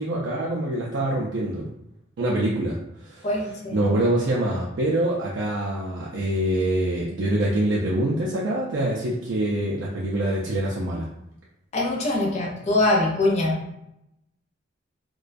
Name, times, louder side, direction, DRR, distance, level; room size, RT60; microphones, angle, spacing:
voice 1, 0.0-1.7 2.2-3.3 3.7-11.1, right 1 dB, 70° right, -4 dB, 0.4 m, -25 dB
voice 2, 3.2-3.9 11.7-13.6, left 2 dB, 35° left, 0 dB, 0.4 m, -23 dB
2.3 x 2.2 x 2.5 m, 0.84 s
head